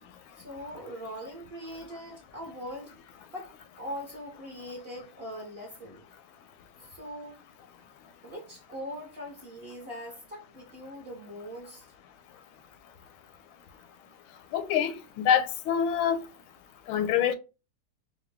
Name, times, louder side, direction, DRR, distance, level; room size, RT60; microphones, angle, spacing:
voice 1, 0.4-2.9 3.3-6.1 6.8-7.4 8.2-11.8, equal, 45° right, 0.8 m, -41 dB
voice 2, 14.5-16.2 16.9-17.3, left 9 dB, 90° left, 1.4 m, -25 dB
5.0 x 2.2 x 3.3 m
omnidirectional pair, 2.2 m